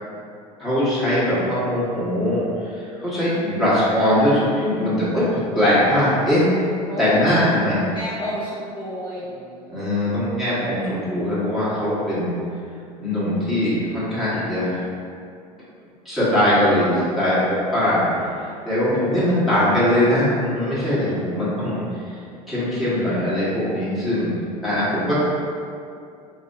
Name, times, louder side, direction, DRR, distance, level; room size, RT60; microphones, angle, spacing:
voice 1, 0.6-2.4 2.8-6.5 7.0-7.8 9.7-12.4 13.0-14.8 16.0-18.1 18.6-21.8 22.5-24.4 24.6-25.2, left 1 dB, ahead, -12 dB, 1.4 m, -21 dB
voice 2, 6.9-10.0 24.8-25.0, left 1 dB, 25° left, -12 dB, 1.0 m, -31 dB
3.4 x 2.6 x 2.7 m, 2.4 s
figure-of-eight pair, 75°, 20 cm